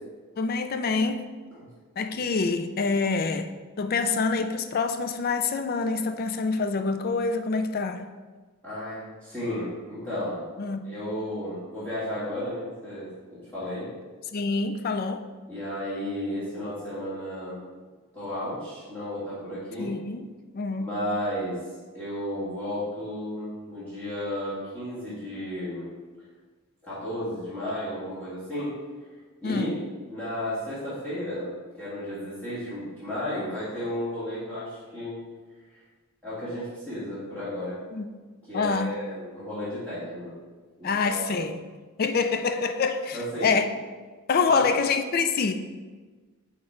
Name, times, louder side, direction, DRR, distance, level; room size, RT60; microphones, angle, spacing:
voice 1, 0.4-1.2 2.0-3.5 3.8-8.1 10.6-10.9 14.3-15.2 19.8-20.3 20.5-20.9 29.4-29.7 37.9-38.1 38.5-38.9 40.8-41.6 42.0-43.7 44.3-45.5, left 4 dB, 40° left, 7 dB, 0.4 m, -26 dB
voice 2, 8.6-10.4 10.8-13.9 15.5-17.6 18.1-19.9 20.8-21.6 21.9-25.9 26.8-28.7 29.4-29.7 30.1-31.5 31.8-35.2 35.7-35.8 36.2-37.8 38.5-40.3 40.8-41.4 43.1-43.5 44.5-44.7, left 1 dB, 10° left, -14 dB, 1.9 m, -33 dB
6.3 x 3.7 x 4.4 m, 1.4 s
head